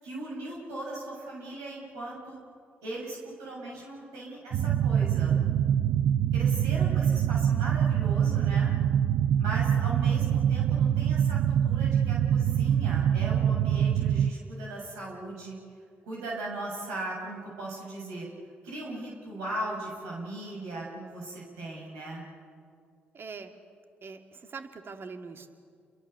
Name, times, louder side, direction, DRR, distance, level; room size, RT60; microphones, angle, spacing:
voice 1, 0.0-2.4 2.8-5.4 6.3-8.7 9.4-15.6 16.0-18.3 18.6-22.2, right 2 dB, 85° right, -4 dB, 7.2 m, -38 dB
sound 1, 4.5-14.3, right 9 dB, 70° right, 0.6 m, -24 dB
voice 2, 23.1-23.5 24.0-25.5, right 5 dB, 50° right, 5 dB, 2.3 m, -42 dB
29.5 x 22.5 x 7.0 m, 2.2 s
hypercardioid pair, 45°, 5 cm